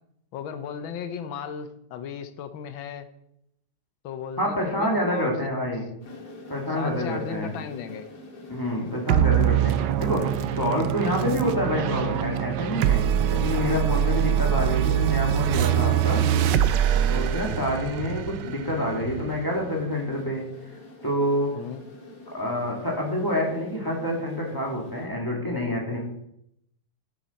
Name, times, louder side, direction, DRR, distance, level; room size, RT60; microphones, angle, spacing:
voice 1, 0.3-3.1 4.0-5.5 6.7-8.1 21.5-21.8, left 7 dB, 70° left, 10 dB, 1.4 m, -36 dB
voice 2, 4.4-5.8 6.5-7.5 8.5-10.3 10.6-13.0 13.3-16.3 17.1-20.4 21.0-21.6 22.3-26.0, left 1 dB, 10° left, -2 dB, 1.5 m, -27 dB
sound 1, 6.0-25.1, left 2 dB, 90° left, 2.7 m, -46 dB
sound 2, 9.1-19.9, right 10 dB, 80° right, 1.0 m, -24 dB
10.0 x 7.4 x 4.1 m, 0.78 s
omnidirectional pair, 2.4 m